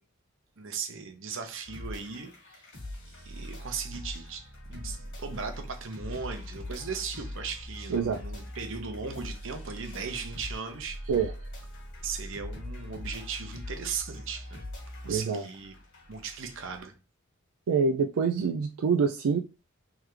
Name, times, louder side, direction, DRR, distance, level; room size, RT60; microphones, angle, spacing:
voice 1, 0.6-2.6 3.2-11.1 12.0-14.6 15.0-15.7 16.1-16.9, right 5 dB, 65° right, 0.8 m, -37 dB
sound 1, 1.6-16.8, left 1 dB, 60° left, 1.5 m, -42 dB
voice 2, 15.1-15.4 17.7-19.4, right 5 dB, 85° right, 0.4 m, -26 dB
3.6 x 3.3 x 3.1 m
head